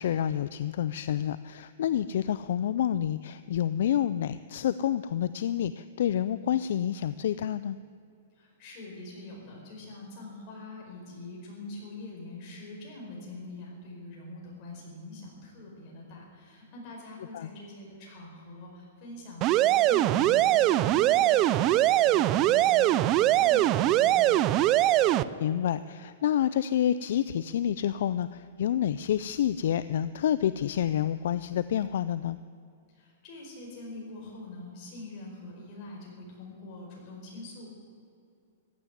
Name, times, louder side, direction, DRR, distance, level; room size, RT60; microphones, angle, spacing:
voice 1, 0.0-7.8 17.3-17.5 25.4-32.4, left 10 dB, 55° left, 14 dB, 0.4 m, -28 dB
voice 2, 8.3-24.7 32.9-37.7, left 2 dB, 30° left, -2 dB, 4.8 m, -44 dB
sound 1, 19.4-25.2, right 14 dB, 25° right, 0.3 m, -22 dB
15.0 x 9.7 x 9.7 m, 2.4 s
hypercardioid pair, 170°, 0 cm